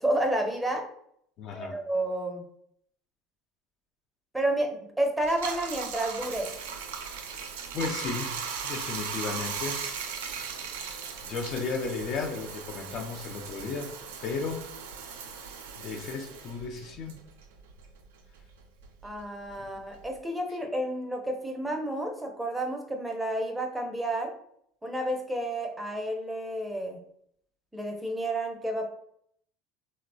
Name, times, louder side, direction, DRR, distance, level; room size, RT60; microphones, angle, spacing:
voice 1, 0.0-0.8 1.5-2.4 4.3-6.5 19.0-24.3 24.8-27.0 27.7-28.9, right 1 dB, 5° right, 2 dB, 0.5 m, -30 dB
voice 2, 1.4-1.8 7.7-8.3 8.6-9.9 10.7-13.9 14.2-14.6 15.8-17.2 19.6-19.7, left 4 dB, 55° left, 3 dB, 0.5 m, -34 dB
Bathtub (filling or washing), 5.2-18.0 18.3-20.2, right 6 dB, 90° right, 0.4 m, -38 dB
2.9 x 2.0 x 2.6 m, 0.68 s
supercardioid pair, 95°, 0 cm